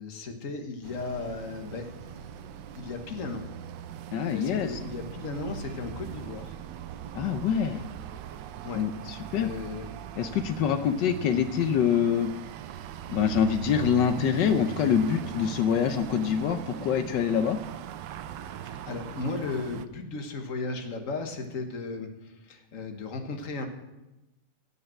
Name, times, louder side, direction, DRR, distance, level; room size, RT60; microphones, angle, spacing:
voice 1, 0.0-2.3 2.8-3.4 4.2-6.5 8.6-8.8 9.3-9.9 18.6-23.7, left 3 dB, 50° left, 5 dB, 1.6 m, -36 dB
sound 1, 0.8-19.9, right 9 dB, 85° right, 1.3 m, -40 dB
voice 2, 4.1-4.7 7.1-7.9 8.7-9.5 10.2-12.3 13.1-17.6, left 8 dB, 85° left, 9 dB, 1.4 m, -25 dB
16.5 x 5.6 x 7.6 m, 0.99 s
omnidirectional pair, 1.9 m